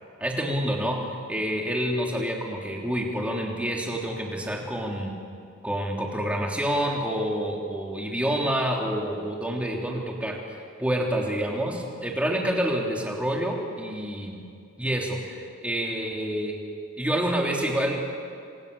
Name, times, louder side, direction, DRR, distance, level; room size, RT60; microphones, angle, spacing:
voice 1, 0.2-1.0 1.3-5.1 5.6-10.4 10.8-14.4 14.8-16.6 17.0-18.0, equal, 5° right, -1 dB, 3.4 m, -28 dB
27.5 x 26.5 x 7.0 m, 2.3 s
head